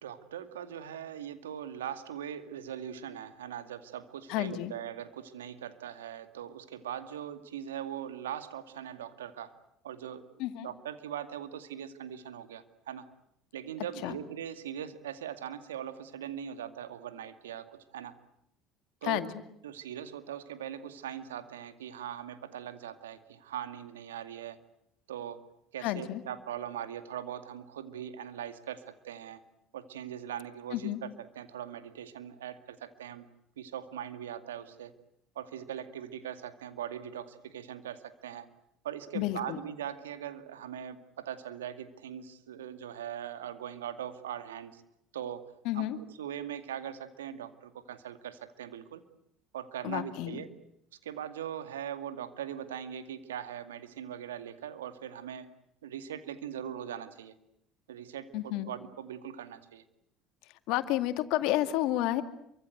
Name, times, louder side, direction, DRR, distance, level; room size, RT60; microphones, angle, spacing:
voice 1, 0.0-9.5 9.8-10.3 10.6-13.1 13.5-18.1 19.0-19.2 19.6-24.6 25.1-25.4 25.7-29.4 29.7-33.3 33.6-34.9 35.4-38.5 38.8-44.8 45.1-45.4 45.7-49.0 49.5-50.5 51.0-55.5 55.8-57.3 57.9-59.8, right 9 dB, 85° right, 10 dB, 2.3 m, -41 dB
voice 2, 4.3-4.7 10.4-10.7 14.0-14.2 19.0-19.4 25.8-26.2 30.7-31.0 39.1-39.6 45.6-46.0 49.8-50.4 58.3-58.7 60.7-62.2, left 15 dB, 65° left, 10 dB, 2.3 m, -31 dB
28.0 x 24.5 x 8.1 m, 0.77 s
hypercardioid pair, 70°, 0 cm